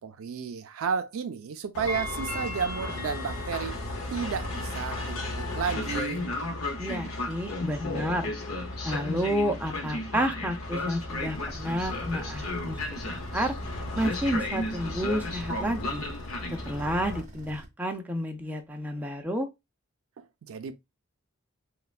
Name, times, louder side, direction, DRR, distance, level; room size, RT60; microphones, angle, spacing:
voice 1, 0.0-3.8 4.1-6.3 20.2-20.7, right 6 dB, 80° right, 0.4 m, -32 dB
Train, 1.7-17.2, left 2 dB, 85° left, 0.7 m, -33 dB
voice 2, 6.8-8.3 8.8-12.8 13.1-13.5 14.0-16.0 16.7-19.5, equal, 10° right, 0.4 m, -30 dB
sound 1, 11.1-17.7, right 1 dB, 35° right, 0.8 m, -45 dB
3.1 x 2.1 x 2.3 m
head